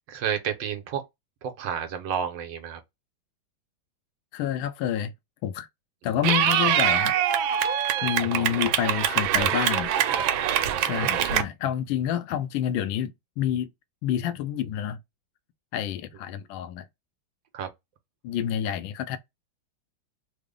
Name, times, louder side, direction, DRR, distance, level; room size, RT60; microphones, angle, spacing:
voice 1, 0.1-1.0 1.4-2.8 8.3-8.7 11.1-11.3 17.5-17.7, right 8 dB, 75° right, 1.4 m, -31 dB
voice 2, 4.3-5.1 5.4-5.7 6.0-7.1 8.0-9.9 10.8-13.7 14.0-15.0 15.7-16.9 18.2-19.2, left 10 dB, 80° left, 1.3 m, -28 dB
Clapping / Cheering, 6.2-11.4, right 10 dB, 90° right, 1.4 m, -24 dB
3.5 x 2.1 x 3.6 m
omnidirectional pair, 2.1 m